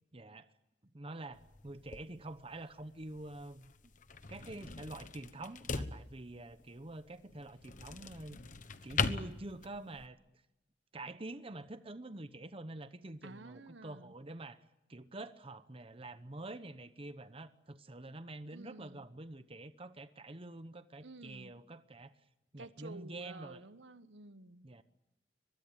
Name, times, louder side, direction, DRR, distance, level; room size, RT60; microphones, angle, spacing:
voice 1, 0.1-0.5 0.9-3.7 4.3-8.4 8.8-10.2 10.9-14.6 14.9-22.1 22.5-23.6 24.6-24.8, right 2 dB, 30° right, 12 dB, 0.9 m, -47 dB
sound 1, 1.3-10.1, left 4 dB, 45° left, 1.2 m, -41 dB
voice 2, 13.2-14.1 18.5-19.0 21.0-21.5 22.6-24.7, right 2 dB, 85° right, 12 dB, 1.2 m, -52 dB
24.0 x 22.0 x 9.0 m, 0.94 s
head